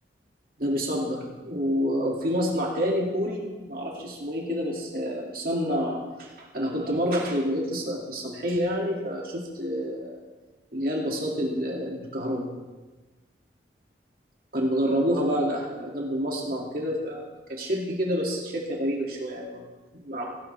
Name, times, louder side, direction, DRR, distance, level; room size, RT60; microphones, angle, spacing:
voice 1, 0.6-10.2 10.7-12.5 14.5-19.6 20.0-20.3, equal, 55° right, -2 dB, 2.4 m, -28 dB
17.0 x 17.0 x 3.4 m, 1.2 s
head